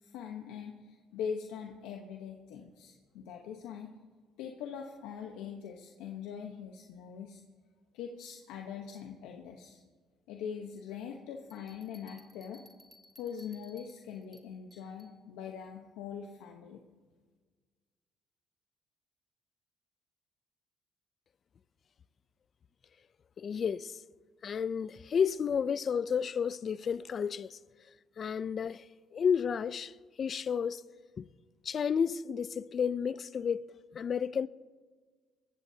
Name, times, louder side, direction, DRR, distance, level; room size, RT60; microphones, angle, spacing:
voice 1, 0.0-3.9 4.4-7.4 7.9-9.8 10.3-12.6 13.2-16.8, left 7 dB, 85° left, 1.0 m, -42 dB
Bell, 11.5-15.2, equal, ahead, 1.4 m, -60 dB
voice 2, 23.4-24.0 24.4-27.6 28.2-28.8 29.1-29.9 30.2-30.8 31.2-31.3 31.6-33.6 33.9-34.5, left 7 dB, 45° left, 0.4 m, -31 dB
21.5 x 15.5 x 2.8 m
supercardioid pair, 80°, 0 cm